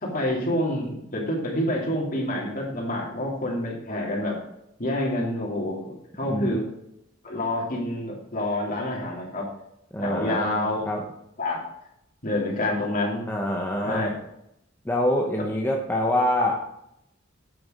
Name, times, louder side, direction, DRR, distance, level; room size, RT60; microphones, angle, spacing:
voice 1, 0.0-4.4 4.8-6.7 7.2-9.4 10.0-10.9 11.4-11.6 12.2-13.3 13.8-14.1, left 1 dB, 45° left, -2 dB, 3.1 m, -27 dB
voice 2, 9.9-11.0 13.3-14.1 14.8-16.8, left 1 dB, 10° left, -1 dB, 0.9 m, -25 dB
9.2 x 6.9 x 5.2 m, 0.80 s
head